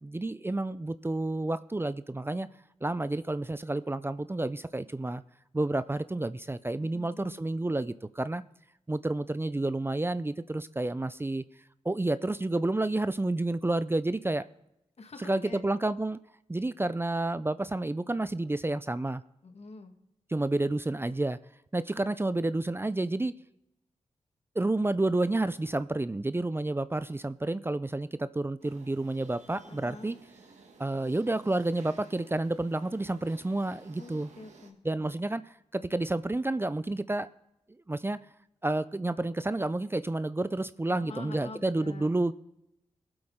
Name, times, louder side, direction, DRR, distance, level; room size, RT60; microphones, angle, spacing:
voice 1, 0.0-2.5 2.8-5.2 5.5-8.4 8.9-11.4 11.8-14.5 15.2-16.2 16.5-19.2 20.3-21.4 21.7-23.3 24.6-30.2 30.8-34.3 34.8-35.4 35.7-37.3 37.9-38.2 38.6-42.3, right 2 dB, 20° right, 14 dB, 0.5 m, -30 dB
voice 2, 6.8-7.4 15.0-15.6 19.4-19.9 29.7-30.2 34.0-34.8 40.9-42.1, left 3 dB, 60° left, 6 dB, 1.6 m, -46 dB
sound 1, 28.6-34.7, right 3 dB, 80° right, 1.5 m, -55 dB
19.5 x 7.9 x 3.7 m, 0.83 s
cardioid pair, 40°, 12 cm